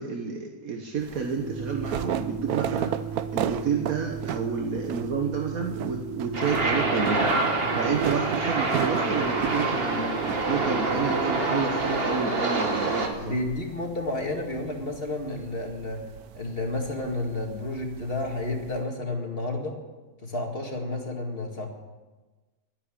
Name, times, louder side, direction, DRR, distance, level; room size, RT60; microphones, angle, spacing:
voice 1, 0.0-3.0 3.3-7.4 7.7-10.1 10.5-13.4, right 5 dB, 70° right, 2 dB, 1.7 m, -30 dB
sound 1, 1.0-18.8, right 10 dB, 90° right, 1.2 m, -36 dB
sound 2, 1.4-11.7, right 6 dB, 80° left, 2.0 m, -38 dB
sound 3, 6.3-13.1, right 2 dB, 40° right, 1.7 m, -26 dB
voice 2, 13.2-16.0 16.3-19.8 20.2-21.7, left 2 dB, 40° left, 2 dB, 2.3 m, -31 dB
12.0 x 10.0 x 9.9 m, 1.2 s
omnidirectional pair, 1.6 m